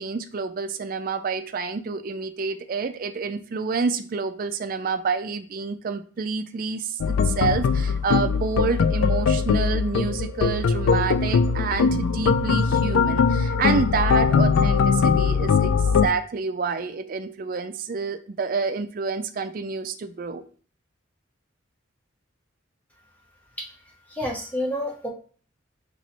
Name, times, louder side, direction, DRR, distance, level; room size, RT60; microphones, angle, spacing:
voice 1, 0.0-20.4, right 4 dB, 45° right, 9 dB, 0.3 m, -28 dB
sound 1, 7.0-16.1, left 5 dB, 80° left, 0.3 m, -21 dB
voice 2, 24.1-25.1, left 1 dB, 5° left, -1 dB, 0.7 m, -29 dB
3.1 x 2.6 x 4.1 m, 0.43 s
head